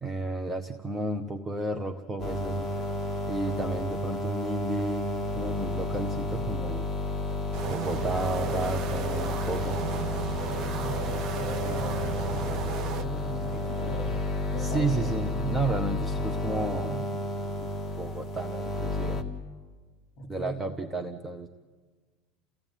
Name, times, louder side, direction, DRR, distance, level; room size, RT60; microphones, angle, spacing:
voice 1, 0.0-2.7 3.3-5.1 5.4-6.9 7.7-9.8 14.6-17.7 18.0-19.2 20.3-21.5, right 2 dB, 10° right, 4 dB, 0.9 m, -32 dB
sound 1, 2.2-19.2, left 2 dB, 15° left, 1.9 m, -31 dB
sound 2, 7.5-13.1, right 9 dB, 40° right, 1.0 m, -35 dB
voice 2, 10.5-15.1 20.2-20.7, equal, 45° left, 3 dB, 3.5 m, -39 dB
29.5 x 16.5 x 9.1 m, 1.5 s
cardioid pair, 155°, 0 cm